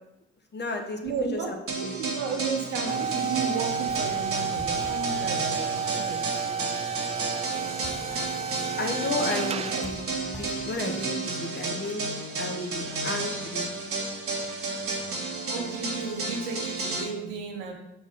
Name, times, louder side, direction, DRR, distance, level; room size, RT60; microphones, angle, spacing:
voice 1, 0.5-1.0 1.3-1.9 8.8-12.1 12.4-13.7, left 2 dB, 35° left, 4 dB, 1.4 m, -33 dB
voice 2, 1.0-1.5 1.8-6.7 15.5-17.7, right 4 dB, 85° right, 1 dB, 1.2 m, -34 dB
sound 1, 1.7-17.0, right 3 dB, 45° right, 1.6 m, -32 dB
sound 2, 2.9-10.1, right 6 dB, 20° right, 0.3 m, -31 dB
sound 3, 3.9-11.1, left 1 dB, ahead, 0.8 m, -46 dB
6.3 x 4.6 x 5.3 m, 0.90 s
hypercardioid pair, 55°, 30 cm